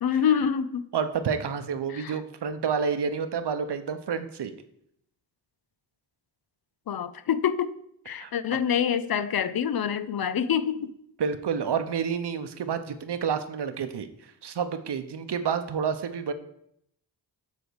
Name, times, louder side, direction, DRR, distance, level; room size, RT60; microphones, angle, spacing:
voice 1, 0.0-0.9 1.9-2.2 6.9-7.8 8.1-10.9, left 8 dB, 60° left, 14 dB, 0.5 m, -26 dB
voice 2, 0.9-4.5 8.2-8.3 11.2-16.3, right 6 dB, 70° right, 10 dB, 0.8 m, -29 dB
8.2 x 3.6 x 6.2 m, 0.74 s
cardioid pair, 65°, 42 cm